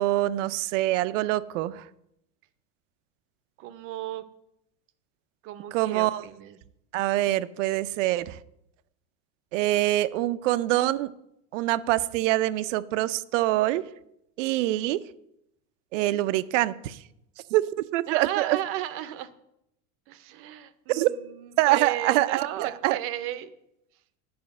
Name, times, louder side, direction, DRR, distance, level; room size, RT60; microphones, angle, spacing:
voice 1, 0.0-1.8 5.7-6.2 6.9-8.4 9.5-11.1 11.5-13.8 14.4-15.0 15.9-17.0 17.5-17.6 17.9-18.6 20.9-21.1 21.6-23.0, right 16 dB, 85° right, 16 dB, 0.6 m, -25 dB
voice 2, 3.6-4.2 5.4-6.6 18.1-19.3 20.1-23.5, right 13 dB, 35° right, 13 dB, 0.6 m, -34 dB
9.5 x 5.0 x 7.6 m, 0.81 s
supercardioid pair, 165°, 36 cm